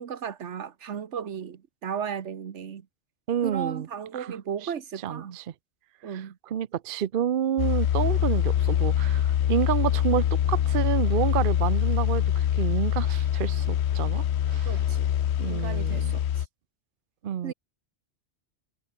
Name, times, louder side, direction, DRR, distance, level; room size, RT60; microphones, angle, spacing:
voice 1, 0.0-2.9 3.4-5.4 6.0-6.4 14.6-15.1 15.4-16.5 17.4-17.5, right 7 dB, 80° right, 1.4 m, -35 dB
voice 2, 3.3-3.9 4.1-4.4 4.6-4.7 5.0-5.4 6.1-6.2 6.5-14.8 15.4-16.2 17.2-17.5, right 10 dB, 55° right, 0.8 m, -29 dB
sound 1, 7.6-16.5, left 10 dB, 70° left, 1.0 m, -24 dB
omnidirectional pair, 1.2 m